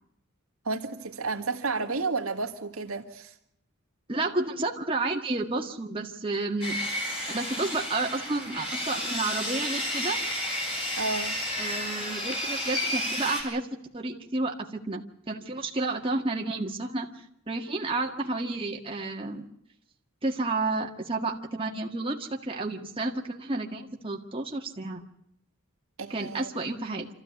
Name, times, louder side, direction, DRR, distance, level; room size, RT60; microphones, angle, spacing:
voice 1, 0.7-3.3 11.0-11.4 26.0-26.5, right 3 dB, 75° right, 4 dB, 1.9 m, -31 dB
voice 2, 4.1-6.8 7.3-10.2 11.6-13.7 13.9-17.1 17.5-19.5 20.2-25.1 26.1-27.1, right 2 dB, 25° right, 0 dB, 1.8 m, -31 dB
Sawing, 6.6-13.4, left 1 dB, 25° left, 6.7 m, -31 dB
26.0 x 14.5 x 9.6 m, 0.74 s
head